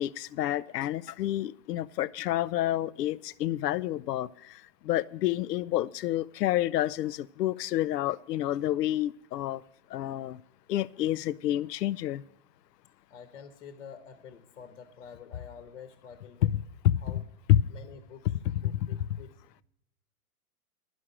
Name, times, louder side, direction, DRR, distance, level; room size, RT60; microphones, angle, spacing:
voice 1, 0.0-9.6 9.9-10.4 10.7-12.2 16.4-16.5 16.8-17.0 17.5-17.6 18.5-18.9, left 13 dB, 85° left, 0.5 m, -28 dB
voice 2, 13.1-16.5 17.0-17.2 17.7-19.4, left 6 dB, 55° left, 1.1 m, -48 dB
11.0 x 6.2 x 8.7 m
hypercardioid pair, 165°, 47 cm